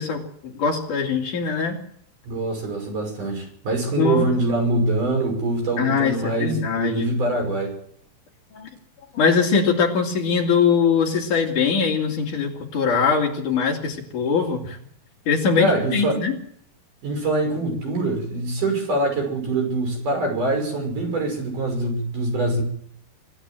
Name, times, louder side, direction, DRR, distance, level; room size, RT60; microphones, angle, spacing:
voice 1, 0.0-1.8 3.9-4.3 5.8-7.1 8.5-8.7 9.1-14.8 15.3-16.4, left 5 dB, 60° left, 1 dB, 3.8 m, -22 dB
voice 2, 2.3-7.7 15.6-16.2 17.0-22.6, right 2 dB, 55° right, 2 dB, 7.5 m, -24 dB
26.0 x 13.0 x 7.7 m, 0.66 s
omnidirectional pair, 4.3 m